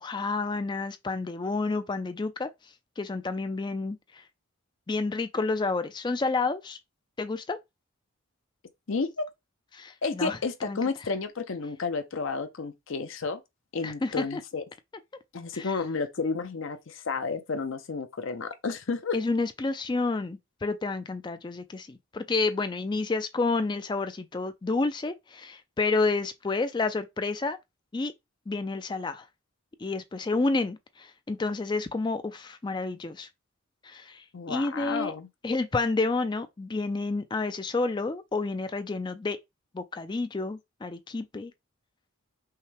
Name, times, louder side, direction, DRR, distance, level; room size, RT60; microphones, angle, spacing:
voice 1, 0.0-2.5 3.0-4.2 4.9-6.8 7.2-7.6 9.7-10.8 13.8-14.4 15.5-15.8 19.1-27.6 27.9-28.1 28.5-29.3 29.8-33.3 33.8-35.1 35.4-39.4 39.7-41.5, left 3 dB, 20° left, 0.3 m, -30 dB
voice 2, 8.9-9.3 10.0-13.4 13.7-14.6 15.3-19.2 34.3-35.3, left 4 dB, 60° left, 0.6 m, -31 dB
5.5 x 2.2 x 3.3 m
head